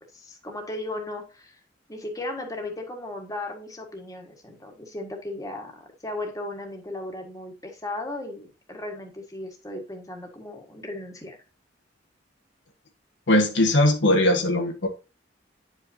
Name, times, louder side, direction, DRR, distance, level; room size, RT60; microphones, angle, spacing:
voice 1, 0.1-1.6 1.9-11.4, left 2 dB, 20° left, 1.6 m, -36 dB
voice 2, 13.3-14.9, left 1 dB, 75° left, 1.2 m, -20 dB
9.3 x 5.2 x 2.7 m
head